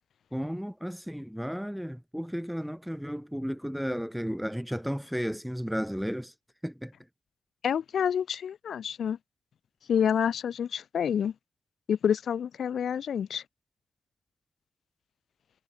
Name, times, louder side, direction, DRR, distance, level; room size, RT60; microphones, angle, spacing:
voice 1, 0.3-6.3 6.6-6.9, equal, ahead, 1.2 m, -33 dB
voice 2, 7.6-9.2 9.9-11.3 11.9-13.4, left 8 dB, 65° left, 2.5 m, -28 dB
supercardioid pair, 55°, 0 cm